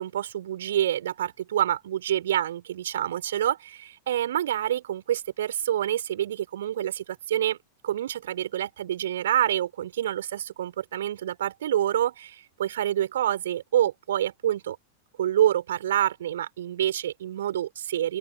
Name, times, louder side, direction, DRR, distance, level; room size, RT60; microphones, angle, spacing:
voice 1, 0.0-7.6 7.8-14.8 15.2-18.2, right 11 dB, 60° right, 4.1 m, -27 dB
open air
figure-of-eight pair, 90°, 0 cm